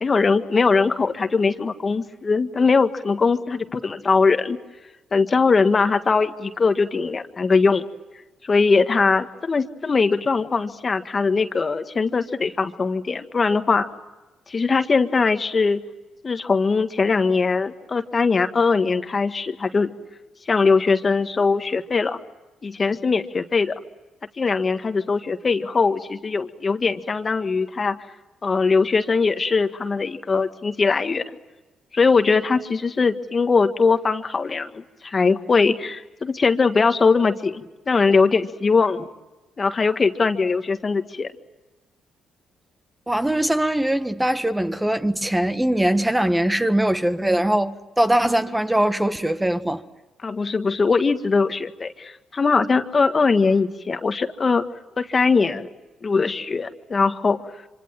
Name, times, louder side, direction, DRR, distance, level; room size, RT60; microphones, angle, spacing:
voice 1, 0.0-4.6 5.1-7.8 8.4-13.9 14.5-15.8 16.2-19.9 20.5-22.2 22.6-23.8 24.4-28.0 28.4-31.2 31.9-39.1 39.6-41.3 50.2-54.6 55.0-55.7 56.0-57.4, left 4 dB, 40° left, 1.6 m, -21 dB
voice 2, 43.1-49.8, right 1 dB, 10° right, 1.5 m, -21 dB
26.0 x 25.5 x 7.6 m
supercardioid pair, 60°, 0 cm